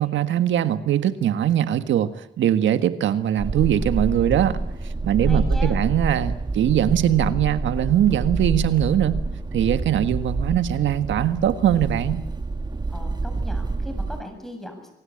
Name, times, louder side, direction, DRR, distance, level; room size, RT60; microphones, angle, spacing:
voice 1, 0.0-4.6 5.0-9.2 9.5-12.2, right 10 dB, 70° right, 11 dB, 1.6 m, -21 dB
sound 1, 3.4-14.2, right 3 dB, 20° right, 1.5 m, -27 dB
voice 2, 5.2-5.8 12.9-14.9, equal, ahead, 5 dB, 7.7 m, -38 dB
27.0 x 17.5 x 8.7 m, 0.86 s
cardioid pair, 90°, 20 cm